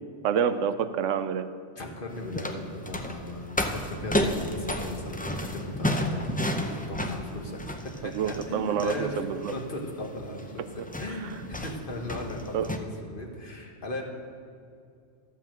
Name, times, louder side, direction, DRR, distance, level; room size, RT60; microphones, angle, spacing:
voice 1, 0.2-1.5 8.1-9.5 12.5-12.7, right 8 dB, 85° right, 11 dB, 0.9 m, -27 dB
voice 2, 1.8-9.2 9.5-10.6 11.0-14.0, left 1 dB, 45° left, 1 dB, 1.4 m, -37 dB
sound 1, 2.1-12.8, left 1 dB, 15° left, 0.3 m, -32 dB
12.0 x 5.6 x 7.5 m, 2.4 s
omnidirectional pair, 1.3 m